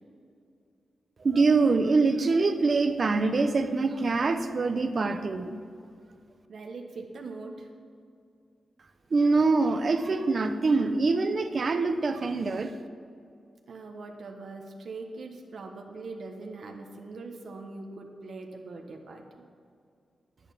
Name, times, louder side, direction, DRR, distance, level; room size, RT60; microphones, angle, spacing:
voice 1, 1.2-5.6 9.1-12.7, right 3 dB, 40° right, 9 dB, 0.6 m, -24 dB
voice 2, 6.5-7.7 13.7-19.4, right 3 dB, 55° right, 2 dB, 1.2 m, -42 dB
10.5 x 9.1 x 6.0 m, 2.4 s
wide cardioid pair, 160°, 0 cm